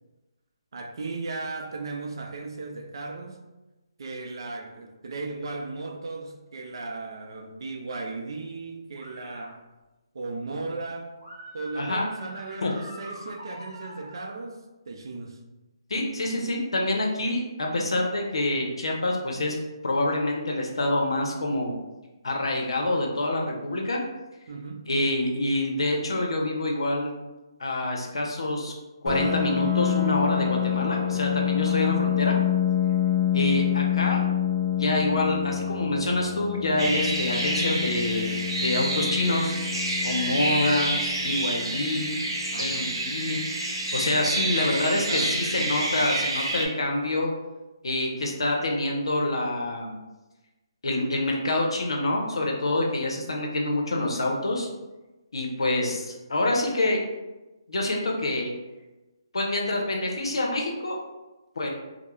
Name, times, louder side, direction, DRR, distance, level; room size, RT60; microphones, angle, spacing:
voice 1, 0.7-3.4 4.0-9.6 10.1-11.2 11.5-15.4 24.5-24.9 31.6-32.0 42.5-43.0 44.6-45.5, right 3 dB, 60° right, 3 dB, 0.4 m, -36 dB
sound 1, 8.9-9.5 11.2-14.3, equal, 30° right, 1.0 m, -44 dB
voice 2, 11.8-12.1 12.6-12.7 15.9-19.6 19.8-21.7 22.2-24.0 24.9-27.1 27.6-28.7 29.0-32.3 33.3-34.3 34.8-39.5 40.0-42.1 42.6-43.4 43.9-47.3 47.8-50.0 50.8-54.7 55.3-57.0 57.7-58.5 59.3-61.0 61.6-61.7, left 1 dB, 80° left, 0 dB, 0.6 m, -26 dB
Piano, 29.1-44.5, left 10 dB, 5° left, 0.6 m, -28 dB
sound 2, 36.8-46.7, right 1 dB, 85° right, 0.7 m, -28 dB
2.2 x 2.0 x 3.0 m, 1.1 s
hypercardioid pair, 160°, 3 cm